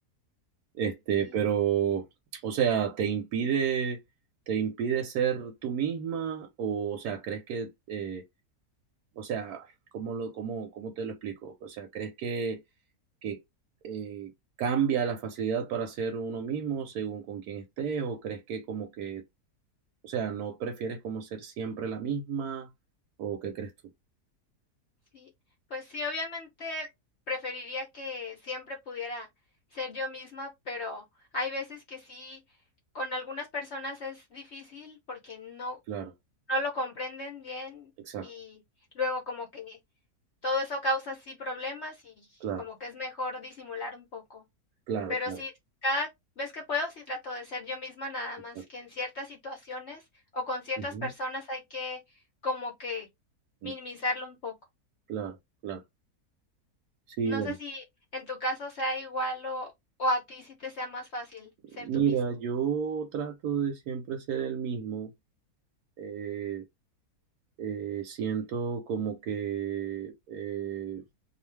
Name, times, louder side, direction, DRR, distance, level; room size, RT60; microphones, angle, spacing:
voice 1, 0.7-2.0 2.3-4.0 4.5-8.2 9.2-12.6 13.2-13.4 13.8-14.3 14.6-19.2 20.0-22.7 23.2-23.7 35.9-36.1 38.0-38.3 42.4-42.6 44.9-45.4 50.8-51.1 53.6-53.7 55.1-55.4 55.6-55.8 57.1-57.6 61.7-65.1 66.0-66.6 67.6-71.0, right 7 dB, 80° right, 1.1 m, -31 dB
voice 2, 25.7-26.9 27.3-29.3 29.7-31.0 31.3-32.4 32.9-35.8 36.5-37.9 38.2-38.6 39.0-39.8 40.4-42.3 42.6-44.4 45.1-45.5 45.8-46.1 46.4-50.0 50.3-52.0 52.4-53.1 53.6-54.5 57.2-57.8 58.1-59.7 60.0-62.1, left 2 dB, 60° left, 0.7 m, -34 dB
2.4 x 2.3 x 3.1 m
omnidirectional pair, 1.7 m